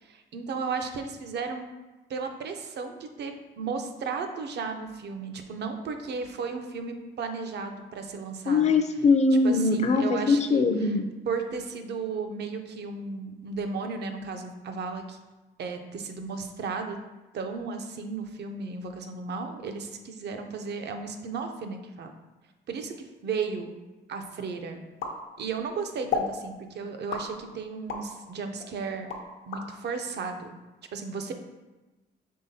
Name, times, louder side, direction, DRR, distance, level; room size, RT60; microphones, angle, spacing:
voice 1, 0.0-1.7 2.1-8.7 9.4-11.0 11.3-15.2 15.6-17.0 17.3-22.1 22.7-23.7 24.1-24.8 25.4-29.1 29.5-30.5 30.9-31.3, right 5 dB, 60° right, 6 dB, 0.6 m, -34 dB
voice 2, 8.5-11.0, left 3 dB, 35° left, 7 dB, 0.4 m, -22 dB
sound 1, 25.0-25.7 26.1-26.4 27.1-28.1 28.6-29.7, left 5 dB, 75° left, 0.7 m, -32 dB
5.5 x 3.3 x 2.7 m, 1.1 s
cardioid pair, 90°, 20 cm